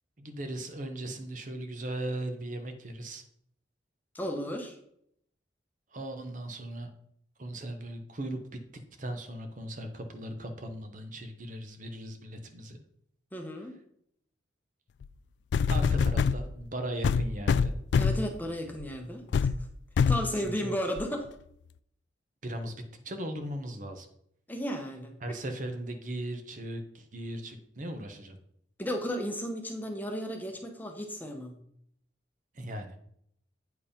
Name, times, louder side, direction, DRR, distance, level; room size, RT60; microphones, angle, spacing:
voice 1, 0.2-3.2 5.9-6.9 7.4-8.4 9.0-12.8 15.7-17.7 20.3-20.8 22.4-24.1 25.2-28.4 32.5-32.9, right 1 dB, 45° right, 7 dB, 0.9 m, -38 dB
voice 2, 4.1-4.8 13.3-13.7 18.0-19.5 20.1-21.3 24.5-25.4 28.8-31.6, equal, 10° left, 3 dB, 0.9 m, -34 dB
sound 1, 15.0-15.1 15.5-16.4 17.0-18.3 18.8-19.0 19.3-19.6 20.0-20.3 21.0-21.1, left 5 dB, 70° left, 0.3 m, -25 dB
8.7 x 4.7 x 5.2 m, 0.71 s
head